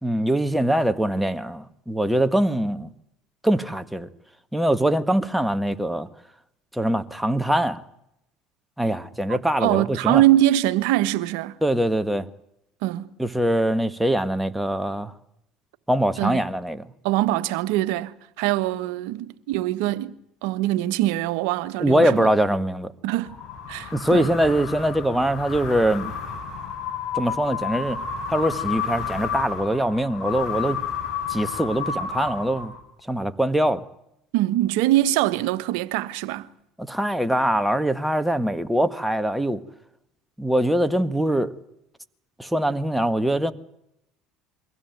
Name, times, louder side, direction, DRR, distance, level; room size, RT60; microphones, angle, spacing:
voice 1, 0.0-2.9 3.4-4.1 4.5-6.1 6.7-7.8 8.8-10.2 11.6-12.3 13.2-15.1 15.9-16.8 21.8-22.9 23.9-26.1 27.1-28.0 28.3-30.8 31.3-32.7 33.1-33.8 36.9-39.6 40.4-41.5 42.4-43.5, right 1 dB, 5° right, 1.7 m, -23 dB
voice 2, 9.3-11.6 12.8-13.1 16.2-16.4 17.0-20.1 20.4-22.3 23.0-23.3 23.7-24.3 34.3-36.5, right 15 dB, 75° right, 1.3 m, -23 dB
sound 1, 23.3-33.0, left 7 dB, 45° left, 4.7 m, -31 dB
23.5 x 16.5 x 9.3 m
supercardioid pair, 85°, 0 cm